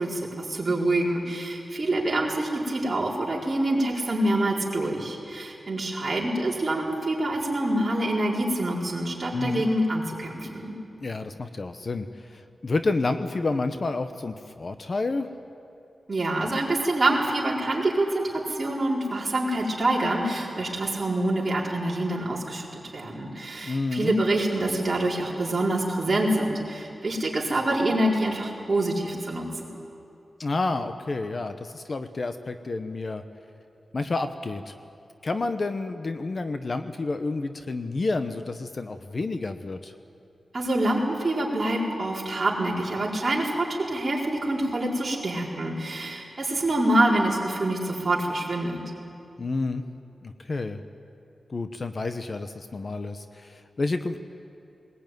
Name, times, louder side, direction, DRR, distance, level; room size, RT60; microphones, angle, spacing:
voice 1, 0.0-10.7 16.1-29.5 40.5-48.8, right 1 dB, 35° right, -4 dB, 4.5 m, -26 dB
voice 2, 9.3-9.6 11.0-15.3 23.6-24.2 30.4-33.2 33.9-34.7 35.2-39.9 49.4-49.8 50.2-50.8 51.5-54.2, left 3 dB, 40° left, 8 dB, 0.9 m, -29 dB
20.5 x 20.5 x 9.3 m, 2.7 s
wide cardioid pair, 150°, 0 cm